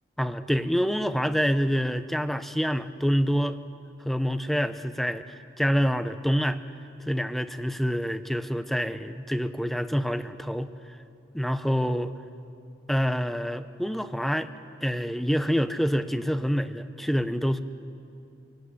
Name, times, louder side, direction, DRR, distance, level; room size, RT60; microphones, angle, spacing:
voice 1, 0.2-3.6 4.0-6.6 7.1-10.7 11.3-12.1 12.9-14.5 14.8-17.6, equal, ahead, 11 dB, 0.8 m, -26 dB
27.0 x 17.5 x 9.8 m, 2.8 s
head